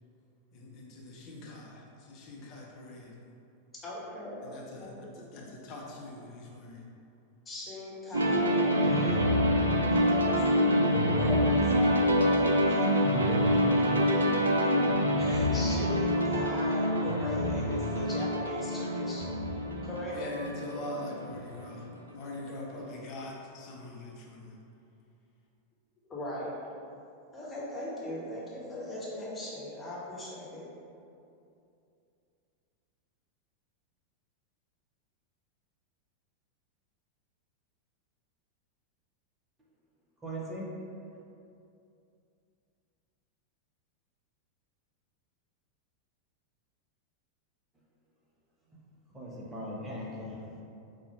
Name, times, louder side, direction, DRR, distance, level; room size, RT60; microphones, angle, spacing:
voice 1, 0.5-3.1 4.4-6.8 20.1-24.6, left 1 dB, 40° left, -3 dB, 0.8 m, -43 dB
voice 2, 3.8-5.1 7.4-9.2 9.9-13.6 15.2-19.4 19.8-20.2 26.0-26.5 27.3-30.7, left 1 dB, 15° left, -7 dB, 1.3 m, -39 dB
sound 1, 8.1-21.9, equal, 75° right, 0.4 m, -26 dB
voice 3, 40.2-40.9 49.1-50.6, equal, 15° right, -4 dB, 0.8 m, -39 dB
4.2 x 2.3 x 4.4 m, 2.6 s
figure-of-eight pair, 90°, 0 cm